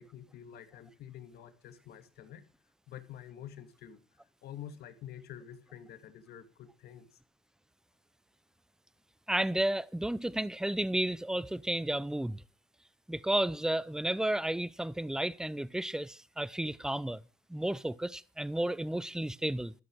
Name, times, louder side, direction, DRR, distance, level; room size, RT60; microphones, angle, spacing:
voice 1, 0.0-2.4 2.9-4.0 4.4-7.1, left 10 dB, 70° left, 2.4 m, -48 dB
voice 2, 9.3-12.4 13.1-17.2 17.5-19.7, right 1 dB, 5° right, 0.6 m, -32 dB
13.5 x 11.5 x 6.3 m
cardioid pair, 110°, 17 cm